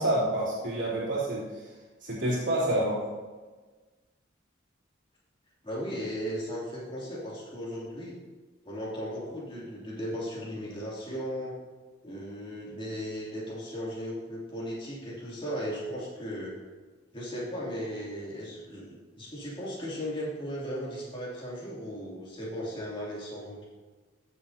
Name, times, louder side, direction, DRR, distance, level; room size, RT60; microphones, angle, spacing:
voice 1, 0.0-1.7 2.0-3.0, right 1 dB, 70° right, -7 dB, 3.2 m, -28 dB
voice 2, 5.6-8.1 8.6-11.6 12.0-16.5 17.1-23.6, equal, 25° left, -6 dB, 2.8 m, -36 dB
14.5 x 7.3 x 2.8 m, 1.3 s
head